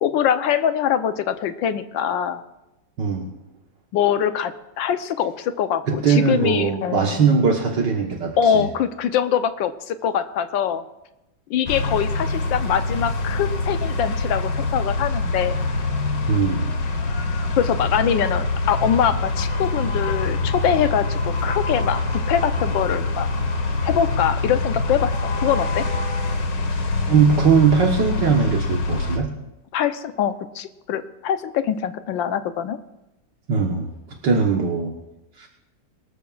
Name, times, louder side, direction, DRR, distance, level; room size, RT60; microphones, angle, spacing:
voice 1, 0.0-2.4 3.9-7.4 8.4-10.8 11.5-15.6 17.6-23.3 23.8-25.8 29.7-32.8 34.5-34.7, left 9 dB, 85° left, 10 dB, 1.5 m, -23 dB
voice 2, 3.0-3.3 5.9-8.6 16.3-16.7 26.7-29.3 33.5-33.9 34.2-34.9 35.4-35.5, right 5 dB, 70° right, 0 dB, 1.9 m, -20 dB
sound 1, 11.7-29.2, left 2 dB, 70° left, 1.9 m, -24 dB
24.0 x 13.0 x 2.4 m, 0.95 s
omnidirectional pair, 2.0 m